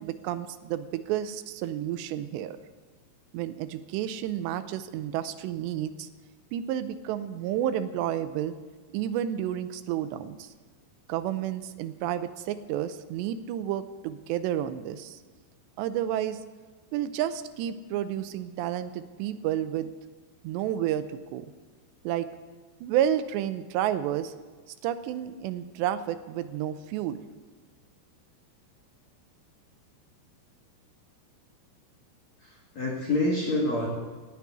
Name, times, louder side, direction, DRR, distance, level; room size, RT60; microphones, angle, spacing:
voice 1, 0.0-2.6 3.3-6.1 6.5-8.6 8.9-10.5 11.1-15.2 15.8-16.4 16.9-19.9 20.4-21.5 22.0-22.3 22.8-24.3 24.8-27.3, right 11 dB, 80° right, 11 dB, 2.7 m, -31 dB
voice 2, 32.4-33.9, left 2 dB, 50° left, -3 dB, 2.5 m, -27 dB
18.0 x 7.1 x 9.5 m, 1.5 s
omnidirectional pair, 5.4 m